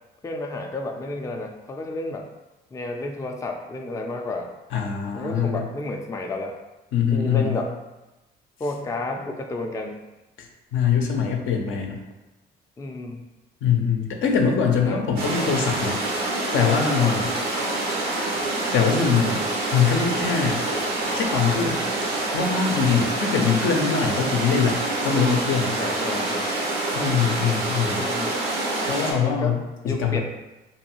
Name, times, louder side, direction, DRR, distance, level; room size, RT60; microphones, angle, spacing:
voice 1, 0.2-2.3 2.7-4.5 5.1-6.6 7.1-7.7 8.6-10.0 12.8-13.2 14.8-15.0 17.0-17.2 23.7-23.8 25.8-26.5 28.0-28.3 29.2-30.2, left 2 dB, 15° left, 2 dB, 0.3 m, -31 dB
voice 2, 4.7-5.6 6.9-7.6 10.4-12.0 13.6-16.0 16.5-17.3 18.7-19.5 19.7-20.6 21.1-21.8 22.3-25.8 26.9-28.1 28.9-30.2, left 6 dB, 70° left, 2 dB, 0.5 m, -23 dB
sound 1, 15.2-29.1, right 2 dB, 85° right, 0.6 m, -26 dB
2.6 x 2.3 x 2.9 m, 1.1 s
supercardioid pair, 60°, 21 cm